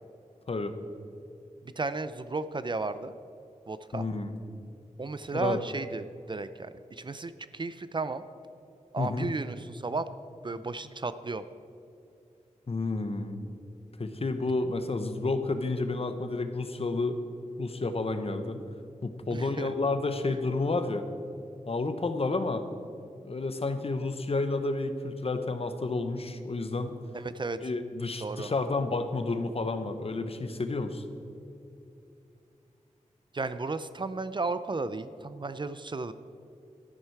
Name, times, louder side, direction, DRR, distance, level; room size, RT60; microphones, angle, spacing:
voice 1, 1.6-3.2 3.7-4.1 5.0-8.2 8.9-10.1 10.4-11.4 19.3-19.7 20.3-20.4 27.1-27.7 28.2-28.5 33.3-36.1, right 3 dB, 35° right, 12 dB, 0.4 m, -34 dB
voice 2, 3.9-4.3 5.3-5.6 9.0-9.3 12.7-13.5 14.0-17.2 17.6-18.6 19.0-21.0 21.7-22.6 23.2-27.0 27.6-31.0, left 3 dB, 50° left, 8 dB, 0.9 m, -30 dB
12.5 x 11.0 x 4.7 m, 2.6 s
wide cardioid pair, 100°, 13 cm